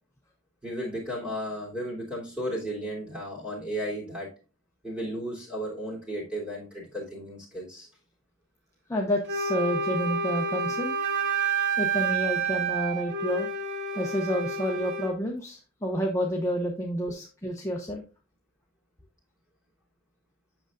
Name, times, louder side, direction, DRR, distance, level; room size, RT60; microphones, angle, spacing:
voice 1, 0.6-4.3 4.8-7.9, equal, 5° right, -4 dB, 3.1 m, -34 dB
voice 2, 8.9-11.0 11.8-13.5 13.9-18.0, equal, 15° left, 0 dB, 0.8 m, -29 dB
Wind instrument woodwind instrument, 9.3-15.2, right 4 dB, 60° right, 0.8 m, -29 dB
7.8 x 6.4 x 2.5 m, 0.33 s
head